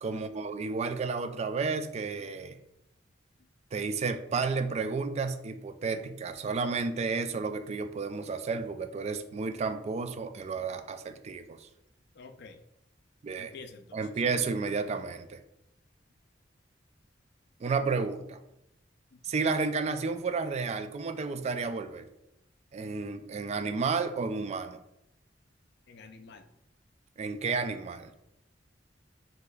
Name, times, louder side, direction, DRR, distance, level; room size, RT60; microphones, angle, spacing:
voice 1, 0.0-2.6 3.7-11.7 13.2-13.5 13.9-15.4 17.6-18.4 19.2-22.1 22.7-24.8 27.2-28.1, right 4 dB, 35° right, 9 dB, 0.3 m, -32 dB
voice 2, 12.1-12.6 13.4-14.0 19.1-19.2 25.9-26.5, left 4 dB, 60° left, 8 dB, 0.4 m, -49 dB
6.4 x 2.8 x 2.3 m, 0.83 s
head